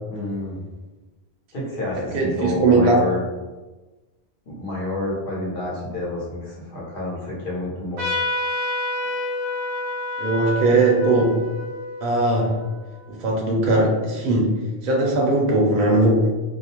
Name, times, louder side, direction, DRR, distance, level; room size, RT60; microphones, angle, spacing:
voice 1, 0.1-0.6 1.5-3.3 4.4-8.0, left 2 dB, 60° left, -6 dB, 1.1 m, -29 dB
voice 2, 2.1-3.0 10.2-11.4 12.0-12.6 13.1-14.5 14.8-16.3, right 2 dB, 55° right, -2 dB, 0.7 m, -19 dB
Trumpet, 8.0-13.1, left 2 dB, 90° right, 0.9 m, -29 dB
2.6 x 2.0 x 2.8 m, 1.2 s
omnidirectional pair, 1.1 m